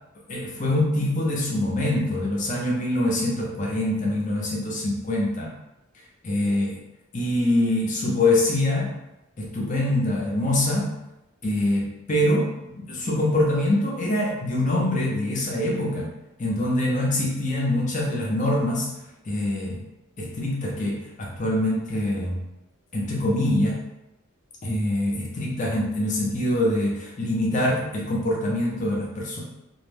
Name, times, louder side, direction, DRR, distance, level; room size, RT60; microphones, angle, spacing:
voice 1, 0.3-5.5 6.2-6.7 7.1-8.9 9.4-10.9 11.4-16.1 16.4-18.9 19.2-19.8 20.2-22.4 22.9-23.8 24.6-29.4, left 1 dB, 35° left, -3 dB, 0.5 m, -24 dB
2.3 x 2.1 x 3.3 m, 0.91 s
head